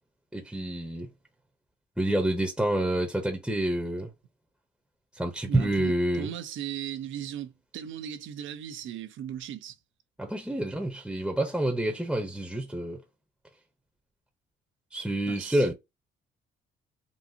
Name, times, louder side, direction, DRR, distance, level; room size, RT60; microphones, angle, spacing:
voice 1, 0.3-1.1 2.0-4.1 5.1-6.3 10.2-13.0 14.9-15.7, right 1 dB, 5° right, 0.8 m, -28 dB
voice 2, 5.4-9.8 15.3-15.7, right 10 dB, 75° right, 0.7 m, -37 dB
4.0 x 2.4 x 2.7 m
cardioid pair, 90°, 20 cm